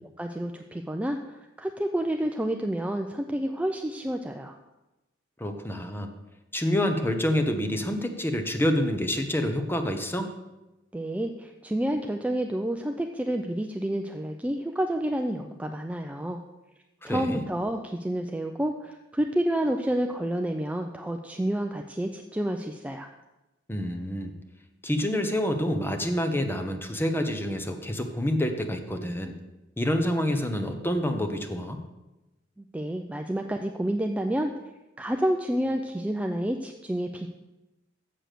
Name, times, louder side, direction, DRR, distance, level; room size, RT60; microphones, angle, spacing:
voice 1, 0.2-1.2 1.6-4.5 10.9-16.4 17.0-23.1 32.7-34.5 35.0-37.3, right 1 dB, 5° right, 4 dB, 0.4 m, -29 dB
voice 2, 5.4-6.1 6.5-10.3 17.1-17.4 23.7-24.3 24.8-29.3 29.8-31.8, left 1 dB, 10° left, 6 dB, 0.8 m, -27 dB
7.6 x 7.0 x 6.6 m, 1.0 s
head